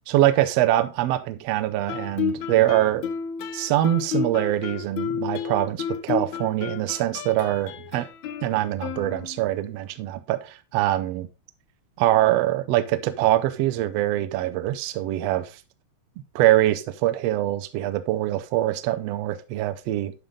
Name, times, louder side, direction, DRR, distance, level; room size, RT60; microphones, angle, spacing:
voice 1, 0.1-3.1 3.5-8.1 8.4-11.3 12.0-15.5 16.3-20.1, right 14 dB, 75° right, 1.5 m, -23 dB
Guitar, 1.9-9.6, left 8 dB, 75° left, 2.0 m, -31 dB
10.5 x 5.6 x 3.7 m
omnidirectional pair, 3.6 m